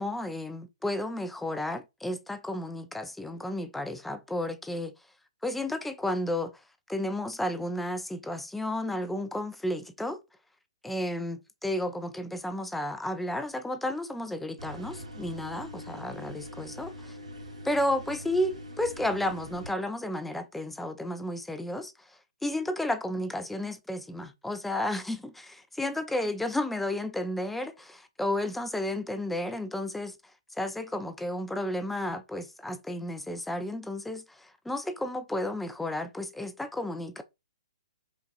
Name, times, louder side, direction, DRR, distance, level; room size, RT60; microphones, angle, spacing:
voice 1, 0.0-4.9 5.4-6.5 6.9-10.2 10.8-17.1 17.6-21.9 22.4-30.2 30.6-37.2, left 1 dB, 5° left, 0.4 m, -32 dB
sound 1, 14.6-19.7, left 1 dB, 85° right, 1.6 m, -43 dB
5.2 x 2.4 x 2.3 m
figure-of-eight pair, 125°, 3 cm